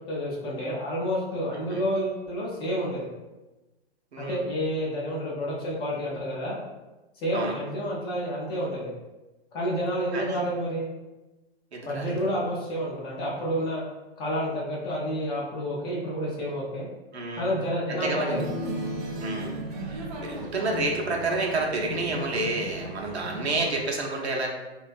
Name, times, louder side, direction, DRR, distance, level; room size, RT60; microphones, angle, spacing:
voice 1, 0.0-3.1 4.2-6.6 7.2-8.9 9.5-10.9 11.9-13.8 14.2-16.9 17.4-18.5, equal, 15° left, -5 dB, 0.4 m, -29 dB
voice 2, 10.1-10.4 11.7-12.4 17.1-17.5 17.9-18.3 19.2-19.5 19.9-24.5, right 2 dB, 85° right, -1 dB, 0.6 m, -29 dB
sound 1, 18.3-23.6, equal, 40° right, 0.5 m, -35 dB
2.4 x 2.3 x 2.5 m, 1.1 s
figure-of-eight pair, 110°, 32 cm